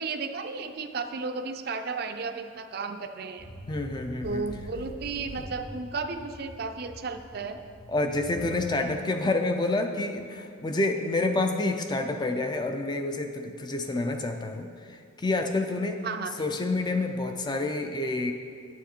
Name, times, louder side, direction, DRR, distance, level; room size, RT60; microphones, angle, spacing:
voice 1, 0.0-3.5 4.2-7.6 16.0-16.3, right 4 dB, 45° right, 7 dB, 0.4 m, -34 dB
sound 1, 3.4-8.8, equal, 65° left, 1.0 m, -45 dB
voice 2, 3.7-4.5 5.4-5.5 7.9-16.0 16.4-18.3, left 2 dB, 20° left, 5 dB, 0.4 m, -28 dB
sound 2, 4.2-5.5, equal, 85° right, 0.9 m, -44 dB
9.6 x 7.1 x 4.4 m, 2.3 s
head